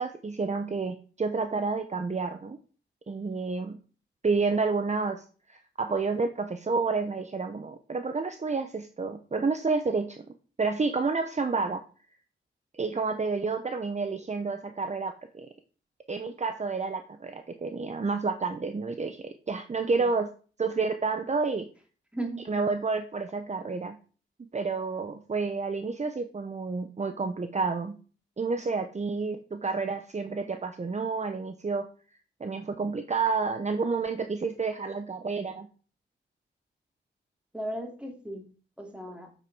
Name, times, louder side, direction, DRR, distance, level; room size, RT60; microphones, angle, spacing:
voice 1, 0.0-2.6 3.1-3.8 4.2-10.2 10.6-11.8 12.7-15.5 16.1-20.3 20.6-21.7 22.5-24.0 24.5-28.0 28.4-31.9 32.4-35.7, right 4 dB, 35° right, 7 dB, 0.8 m, -30 dB
voice 2, 22.1-22.4 37.5-38.5 38.8-39.3, right 1 dB, 5° right, 3 dB, 2.8 m, -36 dB
7.6 x 7.5 x 4.8 m, 0.39 s
cardioid pair, 65°, 20 cm